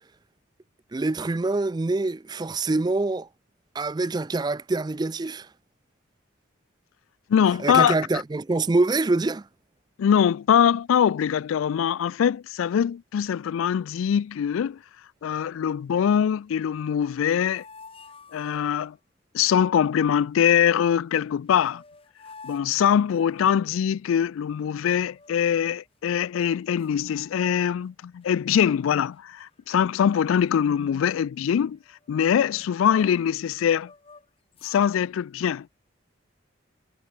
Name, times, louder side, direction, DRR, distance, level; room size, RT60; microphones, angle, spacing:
voice 1, 0.9-3.3 3.7-5.5 7.6-9.5, right 2 dB, 20° right, 0.4 m, -25 dB
voice 2, 7.3-7.9 10.0-14.8 15.2-17.6 18.3-19.0 19.3-21.8 22.4-31.8 32.1-33.9 34.6-35.7, left 8 dB, 80° left, 0.3 m, -23 dB
sound 1, 16.9-18.9 21.1-21.2 21.5-23.7 25.0-25.9 26.4-26.5 26.8-27.9 28.2-28.5 29.1-29.7 30.0-30.2 30.5-33.4 33.8-34.8, left 4 dB, 25° left, 1.2 m, -51 dB
head